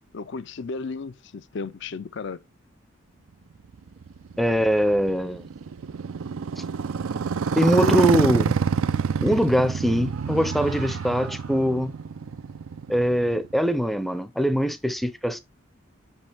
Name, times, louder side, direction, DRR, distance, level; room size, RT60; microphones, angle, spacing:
voice 1, 0.1-2.4, left 4 dB, 55° left, 0.4 m, -34 dB
Motorcycle, 3.7-13.7, right 6 dB, 70° right, 0.4 m, -27 dB
voice 2, 4.4-5.5 6.6-6.7 7.6-8.6 9.2-11.9 12.9-15.4, equal, ahead, 0.5 m, -22 dB
sound 1, 9.7-12.2, right 4 dB, 85° right, 1.6 m, -43 dB
6.3 x 5.3 x 3.4 m
head